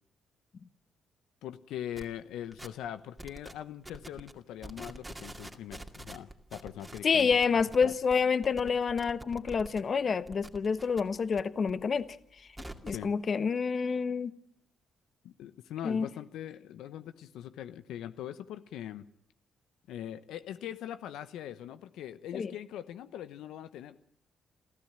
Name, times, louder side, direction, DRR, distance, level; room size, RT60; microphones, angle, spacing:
voice 1, 1.4-7.9 12.9-13.1 15.2-19.1 19.9-24.0, left 11 dB, 85° left, 0.9 m, -42 dB
sound 1, 2.0-2.1 2.5-2.9 3.2-3.5 3.8-4.3 4.6-9.8 10.1-11.4 11.7-13.0, right 1 dB, 10° right, 2.3 m, -46 dB
voice 2, 7.0-12.1 12.8-14.3 15.8-16.1 22.3-22.5, left 5 dB, 45° left, 1.2 m, -28 dB
28.5 x 14.0 x 8.9 m
cardioid pair, 90°, 0 cm